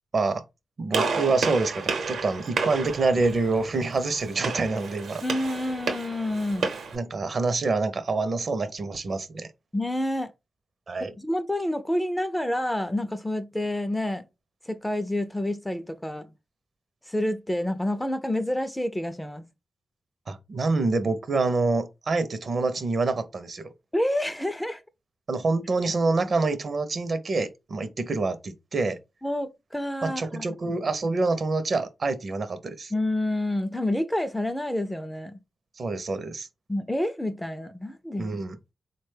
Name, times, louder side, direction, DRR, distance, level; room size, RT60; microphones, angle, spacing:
voice 1, 0.8-5.2 6.9-9.5 10.9-11.1 20.3-23.6 25.3-29.0 30.0-32.9 35.8-36.5 38.2-38.6, right 3 dB, 50° right, 0.5 m, -26 dB
Gunshot gunfire, 0.9-7.0, right 4 dB, 85° right, 0.8 m, -31 dB
voice 2, 5.2-6.7 9.7-10.3 11.0-14.2 14.7-16.3 17.1-19.5 23.9-24.8 29.2-30.4 32.9-35.4 36.7-38.4, left 1 dB, 10° left, 0.4 m, -28 dB
3.9 x 2.2 x 3.2 m
cardioid pair, 90°, 0 cm